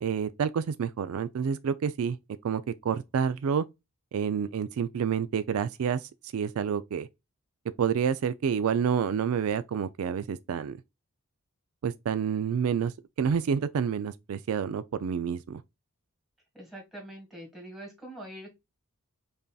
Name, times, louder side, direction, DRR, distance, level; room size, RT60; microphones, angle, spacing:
voice 1, 0.0-2.2 2.4-3.7 4.1-7.1 7.8-10.8 11.8-15.6, right 7 dB, 70° right, 0.3 m, -29 dB
voice 2, 16.5-18.6, right 1 dB, ahead, 1.7 m, -44 dB
5.3 x 2.7 x 2.2 m
head